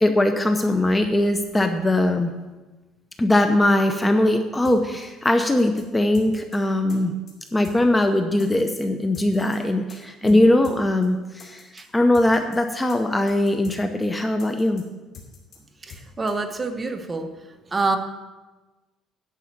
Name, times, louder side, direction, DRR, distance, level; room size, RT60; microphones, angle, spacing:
voice 1, 0.0-2.3 3.2-7.1 7.5-11.6 11.9-14.8, left 1 dB, 10° left, 6 dB, 0.7 m, -20 dB
sound 1, 4.6-4.8 5.0-5.1 5.4-5.8 6.1-6.6 6.9-7.0 7.3-7.8 8.0-8.1 8.4-8.8 9.1-9.6 9.9-10.0 10.3-10.4 10.6-10.8 11.0-11.1 11.4-11.8 12.1-12.6 12.9-13.0 13.3-13.8 14.0-14.1 14.4-14.8 15.1-15.6 15.9-16.0 16.3-16.4, left 6 dB, 45° left, 2.5 m, -44 dB
voice 2, 15.8-17.3 17.7-18.0, right 3 dB, 20° right, 6 dB, 1.0 m, -27 dB
10.0 x 5.6 x 8.6 m, 1.2 s
cardioid pair, 130°, 0 cm